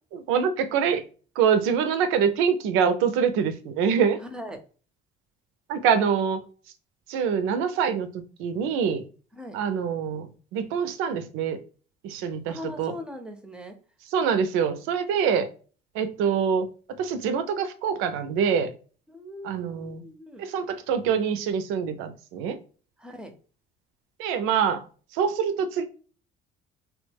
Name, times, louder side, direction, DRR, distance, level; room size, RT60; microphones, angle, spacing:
voice 1, 0.1-1.0 1.4-4.2 5.7-6.4 7.1-8.1 8.4-9.0 9.5-11.6 12.0-12.9 14.1-15.5 15.9-16.7 17.0-18.7 19.4-20.0 20.4-22.6 24.2-24.9 25.1-25.8, right 7 dB, 85° right, 0.4 m, -25 dB
voice 2, 4.2-4.6 9.3-9.6 12.5-13.8 19.1-20.4 23.0-23.4, equal, 5° right, 0.5 m, -40 dB
2.8 x 2.1 x 3.2 m
cardioid pair, 95°, 21 cm